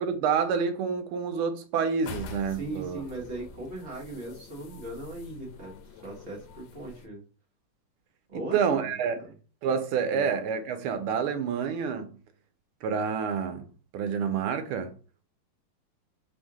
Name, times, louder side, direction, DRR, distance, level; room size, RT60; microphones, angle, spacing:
voice 1, 0.0-3.0 8.3-9.2 9.6-12.1 12.8-13.6 13.9-14.9, right 6 dB, 85° right, 1.5 m, -28 dB
sound 1, 2.0-7.1, left 4 dB, 75° left, 1.4 m, -45 dB
voice 2, 2.5-7.2 8.3-8.8 9.2-9.3 10.0-10.3, right 2 dB, 35° right, 1.4 m, -39 dB
3.7 x 2.7 x 4.7 m
omnidirectional pair, 2.4 m